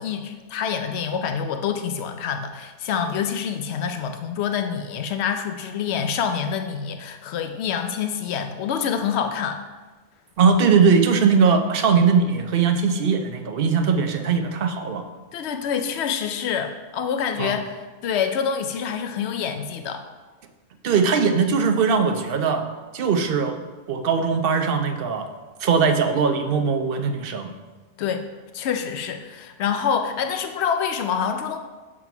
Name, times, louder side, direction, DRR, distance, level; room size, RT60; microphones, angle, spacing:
voice 1, 0.0-9.6 15.3-20.0 28.0-28.3 28.5-31.6, left 7 dB, 85° left, 7 dB, 0.9 m, -26 dB
voice 2, 10.4-15.0 17.4-17.5 20.8-22.7 22.9-23.6 23.9-25.3 25.6-27.5, right 5 dB, 65° right, 7 dB, 0.8 m, -20 dB
7.4 x 3.7 x 5.8 m, 1.3 s
omnidirectional pair, 1.1 m